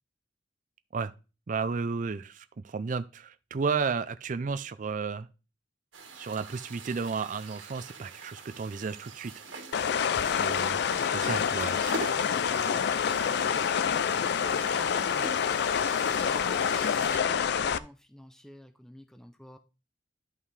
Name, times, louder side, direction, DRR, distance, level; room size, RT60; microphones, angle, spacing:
voice 1, 1.5-5.3 6.2-9.3 10.2-10.7 11.1-11.8, right 5 dB, 45° right, 0.4 m, -33 dB
sound 1, 5.9-17.2, right 3 dB, 90° right, 1.7 m, -44 dB
sound 2, 9.7-17.8, left 7 dB, 60° left, 0.4 m, -27 dB
voice 2, 10.2-11.6 12.1-13.7 14.4-15.7 15.9-19.6, equal, 5° left, 0.5 m, -48 dB
11.0 x 5.7 x 3.3 m
head